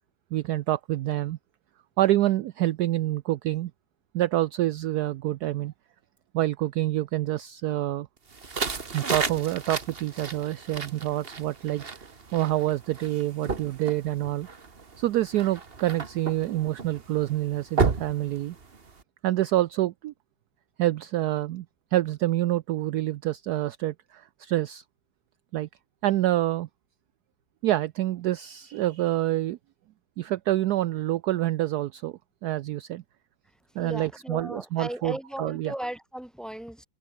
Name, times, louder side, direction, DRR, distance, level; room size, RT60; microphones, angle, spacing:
voice 1, 0.3-1.4 2.0-3.7 4.1-5.7 6.3-8.1 8.9-12.1 12.3-14.5 15.0-18.6 19.2-20.1 20.8-21.7 21.9-24.8 25.5-25.7 26.0-26.7 27.6-29.6 30.2-33.0 33.8-35.7, right 14 dB, 75° right, 0.9 m, -27 dB
sound 1, 8.3-19.0, right 4 dB, 30° right, 1.7 m, -33 dB
voice 2, 33.8-36.9, right 1 dB, ahead, 2.8 m, -36 dB
omnidirectional pair, 2.2 m